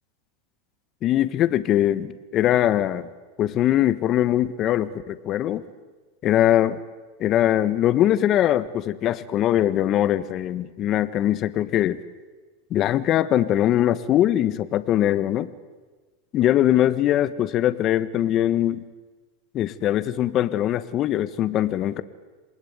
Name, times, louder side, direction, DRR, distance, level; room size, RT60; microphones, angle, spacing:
voice 1, 1.0-3.1 3.4-5.6 6.2-6.8 7.2-12.0 12.7-15.5 16.3-18.8 19.5-22.0, left 12 dB, 40° left, 14 dB, 1.4 m, -21 dB
27.5 x 20.5 x 9.6 m, 1.3 s
supercardioid pair, 125°, 0 cm